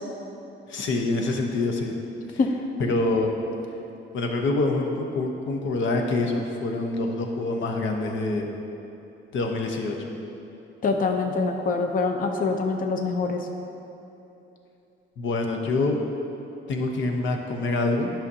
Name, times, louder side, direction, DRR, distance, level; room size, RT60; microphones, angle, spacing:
voice 1, 0.7-1.9 2.3-2.4 2.8-3.3 4.1-8.5 9.3-10.1 15.2-16.0 16.7-18.1, left 2 dB, 75° left, 2 dB, 0.9 m, -26 dB
voice 2, 10.8-13.5, left 4 dB, 45° left, 4 dB, 0.6 m, -24 dB
11.0 x 5.8 x 2.7 m, 2.9 s
cardioid pair, 90°, 20 cm